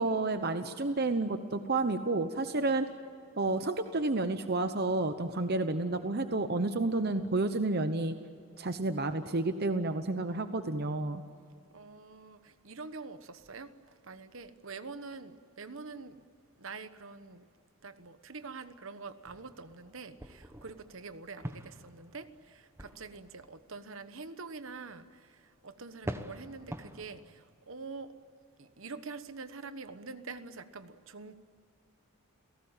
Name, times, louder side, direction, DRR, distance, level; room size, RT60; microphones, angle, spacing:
voice 1, 0.0-2.9 3.4-8.1 8.6-11.2, right 2 dB, 45° right, 0.9 m, -30 dB
voice 2, 11.7-13.7 14.0-16.2 16.6-17.4 17.8-28.1 28.6-31.3, right 4 dB, 60° right, 1.2 m, -45 dB
sound 1, 19.2-23.6 24.9-25.0 26.0-27.3, right 1 dB, 10° right, 1.1 m, -45 dB
30.0 x 18.0 x 9.0 m
head